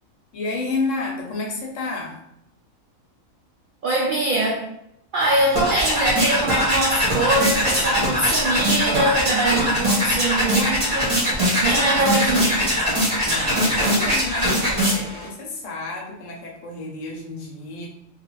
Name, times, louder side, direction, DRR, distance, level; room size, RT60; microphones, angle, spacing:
voice 1, 0.3-2.1 13.2-17.9, left 3 dB, 70° left, 0 dB, 1.0 m, -30 dB
voice 2, 3.8-4.6 5.1-12.7, right 1 dB, 75° right, -3 dB, 0.4 m, -23 dB
sound 1, 5.2-15.3, equal, 30° right, 0.8 m, -21 dB
2.6 x 2.3 x 3.1 m, 0.80 s
omnidirectional pair, 1.4 m